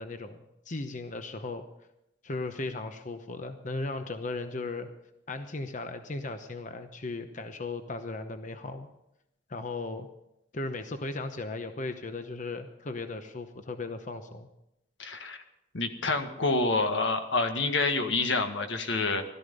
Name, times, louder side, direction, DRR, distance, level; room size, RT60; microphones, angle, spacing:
voice 1, 0.0-1.6 2.2-4.9 5.3-8.9 9.5-10.1 10.5-14.5, left 3 dB, 45° left, 7 dB, 0.9 m, -36 dB
voice 2, 15.0-15.4 15.7-19.2, left 3 dB, 85° left, 6 dB, 1.7 m, -27 dB
16.5 x 13.0 x 5.4 m, 0.85 s
head